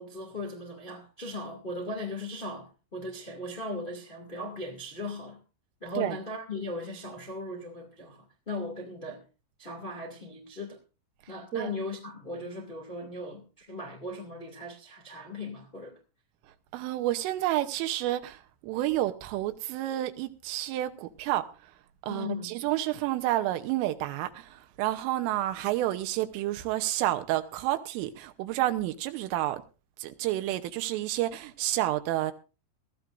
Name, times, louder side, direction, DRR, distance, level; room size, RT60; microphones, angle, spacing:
voice 1, 0.0-5.4 5.8-9.2 9.6-10.8 11.3-15.9 22.1-22.5, left 2 dB, 70° left, 0.5 m, -38 dB
voice 2, 16.7-21.5 22.0-29.6 30.0-32.3, right 14 dB, 80° right, 3.4 m, -30 dB
20.0 x 14.5 x 2.6 m
omnidirectional pair, 5.9 m